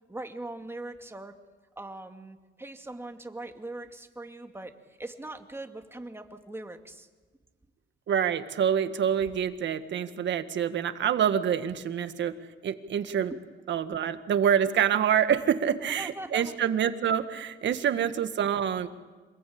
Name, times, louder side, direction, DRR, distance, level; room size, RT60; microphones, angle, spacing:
voice 1, 0.1-1.3 1.8-7.1 15.6-16.6 17.8-18.0, right 2 dB, 10° right, 5 dB, 2.4 m, -41 dB
voice 2, 8.1-12.4 12.6-13.3 13.7-18.9, right 8 dB, 65° right, 9 dB, 1.8 m, -26 dB
27.0 x 20.5 x 8.8 m, 1.3 s
cardioid pair, 90°, 20 cm